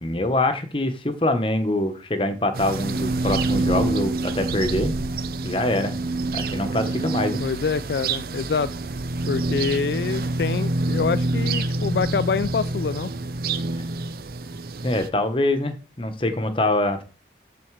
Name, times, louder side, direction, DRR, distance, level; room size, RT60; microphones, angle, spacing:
voice 1, 0.0-4.9 5.4-5.9 6.3-7.4 14.8-17.0, left 1 dB, 30° left, 9 dB, 1.2 m, -24 dB
sound 1, 2.5-15.1, right 2 dB, 55° right, 0.6 m, -27 dB
voice 2, 7.4-8.7 9.3-13.1, left 5 dB, 65° left, 15 dB, 0.3 m, -26 dB
13.5 x 4.4 x 4.8 m, 0.35 s
head